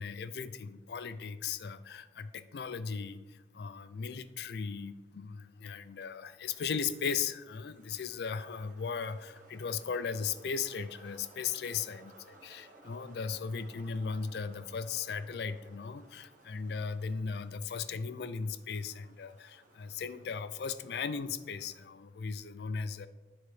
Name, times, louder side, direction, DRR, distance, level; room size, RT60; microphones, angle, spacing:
voice 1, 0.0-23.1, left 6 dB, 65° left, 13 dB, 0.4 m, -37 dB
sound 1, 6.4-21.9, right 2 dB, 45° right, 0.9 m, -60 dB
11.0 x 3.9 x 3.2 m, 1.2 s
head